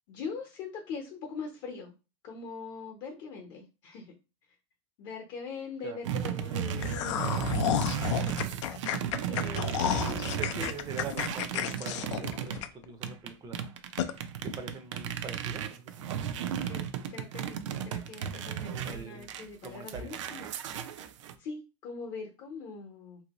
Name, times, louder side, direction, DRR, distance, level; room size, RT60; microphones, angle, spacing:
voice 1, 0.1-1.9 2.2-4.1 5.0-8.4 9.2-10.7 16.6-20.5 21.4-23.2, left 4 dB, 55° left, 2 dB, 0.8 m, -42 dB
sound 1, 6.0-12.6 13.0-21.3, right 9 dB, 85° right, 0.4 m, -35 dB
sound 2, 6.8-13.1 13.4-13.5 14.0-14.1, left 11 dB, 80° left, 0.4 m, -31 dB
voice 2, 10.4-13.6 14.4-16.1 18.8-19.3 19.6-20.1, right 4 dB, 25° right, 7 dB, 0.5 m, -42 dB
2.9 x 2.7 x 2.9 m, 0.30 s
supercardioid pair, 130°, 15 cm